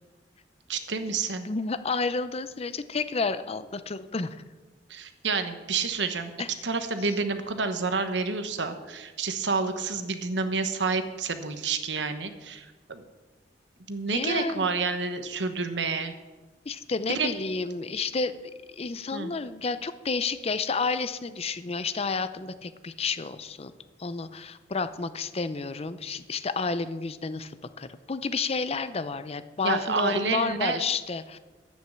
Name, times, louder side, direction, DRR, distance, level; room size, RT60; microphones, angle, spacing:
voice 1, 0.7-1.5 4.9-6.3 6.6-13.0 13.9-16.1 17.1-17.3 19.1-19.3 29.6-30.8, right 4 dB, 85° right, 9 dB, 1.2 m, -29 dB
voice 2, 1.4-4.4 6.4-6.5 14.1-14.7 16.7-18.4 18.7-23.7 24.0-31.4, left 4 dB, 35° left, 13 dB, 0.6 m, -30 dB
11.0 x 8.8 x 7.4 m, 1.3 s
head